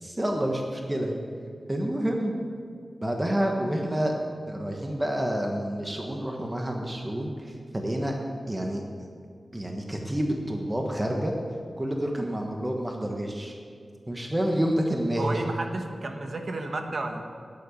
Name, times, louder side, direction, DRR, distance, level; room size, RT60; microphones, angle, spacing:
voice 1, 0.0-1.1 1.7-2.3 3.0-4.2 4.5-8.1 8.5-8.8 9.5-11.3 11.8-13.5 14.1-15.4, right 1 dB, 20° right, 1 dB, 1.4 m, -28 dB
voice 2, 15.2-17.2, right 2 dB, 60° right, 4 dB, 1.3 m, -32 dB
10.0 x 8.8 x 8.4 m, 2.2 s
wide cardioid pair, 100°, 0 cm